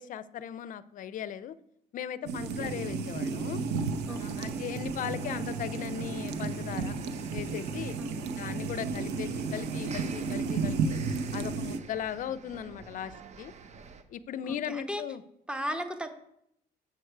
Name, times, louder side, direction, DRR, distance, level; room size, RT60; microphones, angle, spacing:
voice 1, 0.0-1.6 1.9-3.6 4.1-7.0 7.3-8.0 8.4-11.0 11.3-13.5 14.1-15.2, left 9 dB, 50° left, 16 dB, 0.5 m, -38 dB
sound 1, 2.2-11.8, right 4 dB, 80° right, 0.8 m, -33 dB
voice 2, 2.4-2.7 4.1-4.6 8.0-8.4 14.5-15.0 15.5-16.1, equal, 5° right, 8 dB, 0.9 m, -37 dB
sound 2, 4.1-14.0, right 5 dB, 40° right, 0.8 m, -48 dB
7.9 x 6.7 x 4.6 m, 0.74 s
cardioid pair, 110°, 17 cm